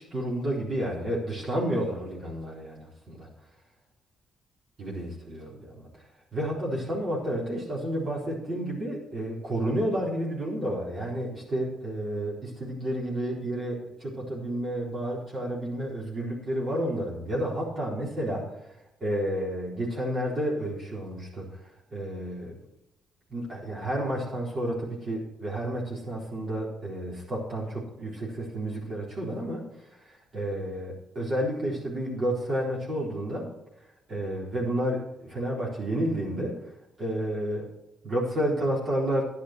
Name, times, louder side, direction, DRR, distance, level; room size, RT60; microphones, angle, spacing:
voice 1, 0.0-3.3 4.8-5.9 6.3-18.5 19.0-21.6 21.9-22.6 23.3-29.6 30.1-33.5 34.1-36.6 37.0-37.7 38.0-39.2, right 1 dB, 45° right, -4 dB, 4.3 m, -31 dB
10.5 x 10.0 x 4.5 m, 0.86 s
cardioid pair, 90°, 0 cm